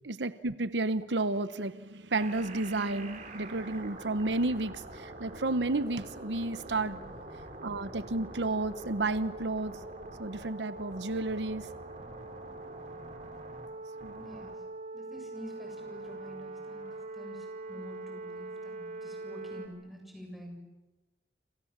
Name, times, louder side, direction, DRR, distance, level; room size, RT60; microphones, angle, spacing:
voice 1, 0.0-7.0 7.6-9.7 10.2-11.7 14.0-14.2, right 2 dB, 85° right, 13 dB, 1.1 m, -32 dB
sound 1, 2.2-19.7, right 2 dB, 45° right, 4.2 m, -43 dB
voice 2, 14.2-14.7 14.9-16.9 17.1-20.6, equal, ahead, 1 dB, 7.5 m, -48 dB
28.0 x 28.0 x 7.4 m, 1.1 s
head